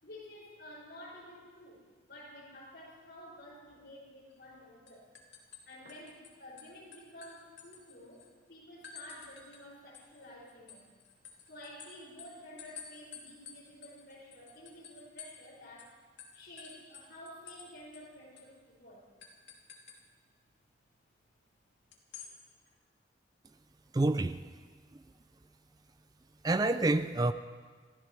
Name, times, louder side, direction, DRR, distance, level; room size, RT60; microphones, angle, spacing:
voice 1, 0.0-5.0 5.6-10.9 11.5-16.0 16.3-19.1, left 1 dB, 60° left, -5 dB, 5.9 m, -51 dB
sound 1, 4.3-4.6 4.9-6.3 6.6-8.3 8.8-9.6 9.9-15.5 15.8-15.9 16.2-17.7 17.9-18.0 18.4-18.5 19.2-20.0 21.9-22.3, left 7 dB, 85° left, 2.5 m, -51 dB
voice 2, 23.9-24.4 26.4-27.3, right 2 dB, 20° right, 11 dB, 0.4 m, -27 dB
27.5 x 14.5 x 3.2 m, 1.5 s
head